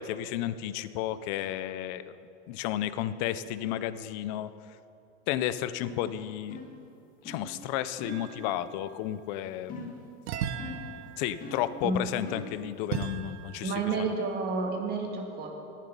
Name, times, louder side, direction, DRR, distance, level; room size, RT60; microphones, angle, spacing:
voice 1, 0.0-2.1 2.5-4.5 5.3-6.6 7.2-9.9 11.2-14.1, left 12 dB, 40° left, 14 dB, 0.5 m, -32 dB
sound 1, 5.8-6.1 6.5-6.8 7.2-7.5 8.0-8.3 9.7-10.1 10.6-10.9 11.4-11.7 12.3-12.6, left 2 dB, 25° left, 1.5 m, -42 dB
sound 2, 8.1-8.8 10.3-13.9, right 8 dB, 70° right, 1.0 m, -38 dB
voice 2, 13.6-15.5, right 3 dB, 25° right, 1 dB, 1.9 m, -30 dB
19.5 x 7.4 x 5.3 m, 2.7 s
supercardioid pair, 155°, 35 cm